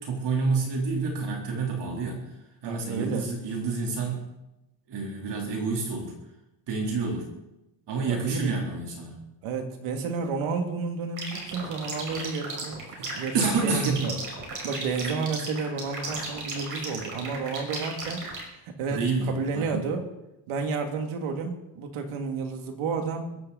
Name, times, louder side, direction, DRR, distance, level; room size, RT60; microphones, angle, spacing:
voice 1, 0.0-4.3 4.9-6.1 6.7-7.3 7.9-9.2 13.0-14.0 18.9-19.9, right 4 dB, 55° right, 0 dB, 3.8 m, -29 dB
voice 2, 2.6-3.2 8.0-8.6 9.4-12.8 13.1-13.4 13.6-14.2 14.6-18.3 18.8-20.1 20.5-23.4, right 4 dB, 80° right, 4 dB, 2.7 m, -31 dB
sound 1, 11.2-18.4, right 3 dB, 40° right, 5.6 m, -35 dB
21.0 x 15.0 x 4.2 m, 0.92 s
cardioid pair, 160°, 49 cm